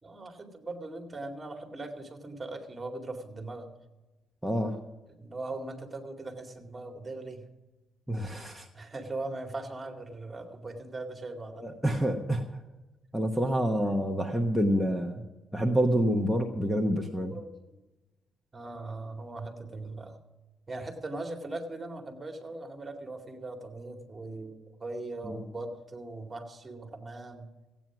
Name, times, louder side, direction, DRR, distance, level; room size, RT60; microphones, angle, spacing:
voice 1, 0.0-3.7 5.1-7.5 8.7-11.7 17.1-17.8 18.5-20.2 20.7-27.5, right 2 dB, 25° right, 5 dB, 2.3 m, -40 dB
voice 2, 4.4-4.8 8.1-8.7 11.6-12.4 13.1-15.2 15.5-17.3 25.2-25.4, equal, ahead, 4 dB, 1.1 m, -27 dB
15.5 x 9.2 x 6.1 m, 1.1 s
cardioid pair, 90°, 0 cm